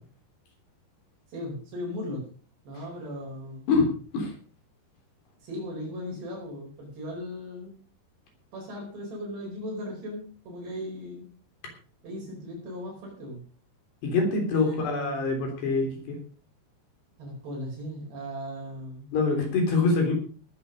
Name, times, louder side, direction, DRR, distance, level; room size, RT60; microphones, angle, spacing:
voice 1, 1.3-2.3 2.7-3.6 5.4-7.8 8.5-11.3 12.0-13.4 14.5-15.2 17.2-19.1, equal, 70° right, -2 dB, 7.0 m, -37 dB
voice 2, 14.0-16.2 19.1-20.1, left 3 dB, 70° left, 2 dB, 5.5 m, -24 dB
19.0 x 8.6 x 5.3 m, 0.40 s
omnidirectional pair, 5.0 m